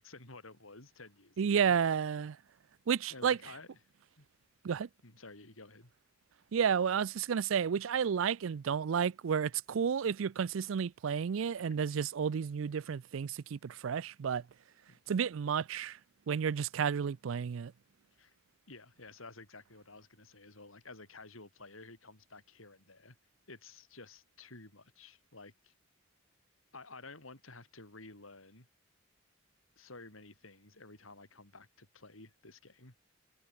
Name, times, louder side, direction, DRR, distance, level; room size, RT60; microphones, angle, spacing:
voice 1, 0.0-1.8 3.1-3.8 4.2-4.3 5.0-5.9 11.7-11.8 14.9-15.0 18.1-18.4 18.7-23.2 23.5-25.7 26.7-28.7 29.8-32.9, left 3 dB, 85° left, 6.1 m, -52 dB
voice 2, 1.4-2.4 2.9-3.4 4.6-4.9 6.5-14.4 15.1-16.0 16.3-17.7, right 7 dB, 75° right, 0.4 m, -31 dB
head